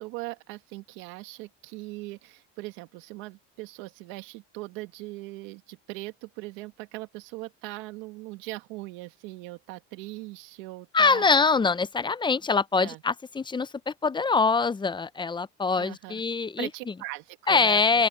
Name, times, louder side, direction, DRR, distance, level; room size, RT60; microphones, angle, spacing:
voice 1, 0.0-11.2 12.8-13.0 15.8-16.2 16.6-18.0, right 21 dB, 85° right, 1.9 m, -40 dB
voice 2, 10.9-16.7 17.5-18.1, left 4 dB, 15° left, 0.5 m, -24 dB
open air
cardioid pair, 110°, 33 cm